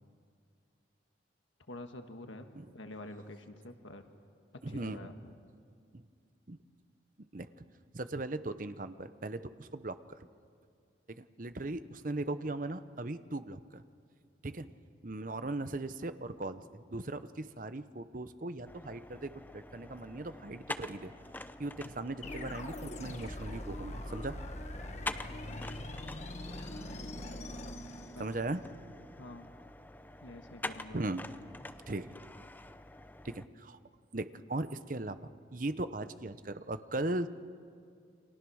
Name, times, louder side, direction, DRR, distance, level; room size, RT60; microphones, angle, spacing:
voice 1, 1.7-2.5 2.7-4.1 4.7-5.4 25.4-25.9 28.1-28.4 29.2-29.5 30.2-31.0, left 1 dB, 90° left, 6 dB, 1.6 m, -48 dB
voice 2, 4.6-5.1 6.5-6.6 7.3-7.6 7.9-10.3 11.2-13.8 14.4-14.7 15.0-21.1 21.6-24.4 28.2-28.6 30.9-31.2 31.9-32.1 33.2-33.8 34.1-37.3, right 2 dB, 45° right, 11 dB, 0.9 m, -38 dB
sound 1, 18.7-33.5, left 2 dB, 10° left, 0.6 m, -47 dB
sound 2, 22.2-28.7, left 1 dB, 35° left, 1.4 m, -42 dB
29.5 x 24.5 x 6.4 m, 2.3 s
head